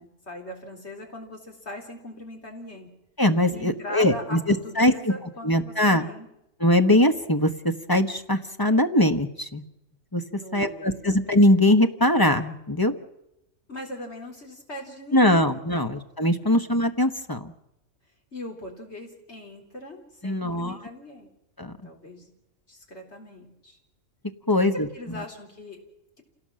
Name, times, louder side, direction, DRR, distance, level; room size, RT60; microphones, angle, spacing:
voice 1, 0.0-2.9 3.5-6.3 10.4-10.9 13.7-15.4 15.7-15.8 16.4-16.6 18.3-21.3 21.8-22.3 22.7-23.8 24.6-25.8, left 1 dB, 55° left, 1 dB, 4.1 m, -40 dB
voice 2, 3.2-4.9 5.4-6.1 6.6-9.6 10.1-10.2 10.5-12.9 15.1-17.5 20.2-20.8 21.6-21.7 24.5-24.9, left 1 dB, 20° left, 7 dB, 1.0 m, -21 dB
27.5 x 18.0 x 7.6 m, 0.88 s
omnidirectional pair, 1.4 m